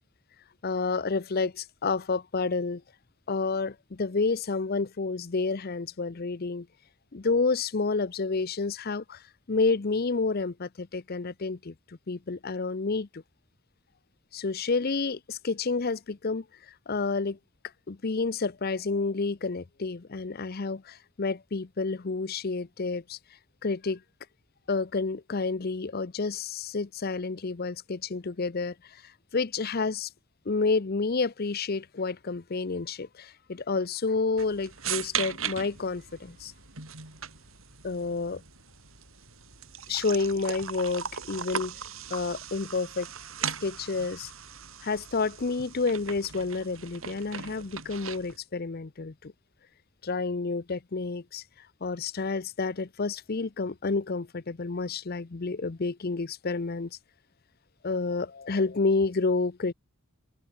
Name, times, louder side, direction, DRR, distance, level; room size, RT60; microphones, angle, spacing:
voice 1, 0.6-2.8 3.3-6.7 7.1-9.2 9.5-13.2 14.3-16.4 16.9-17.4 17.9-23.2 23.6-24.0 24.7-29.0 29.3-30.1 30.5-36.5 37.8-38.4 39.9-41.8 42.1-43.1 43.6-44.3 44.8-49.3 50.0-51.4 51.8-56.9 57.8-59.7, left 4 dB, 45° left, 0.7 m, -29 dB
sound 1, 34.4-48.4, right 8 dB, 75° right, 6.4 m, -38 dB
head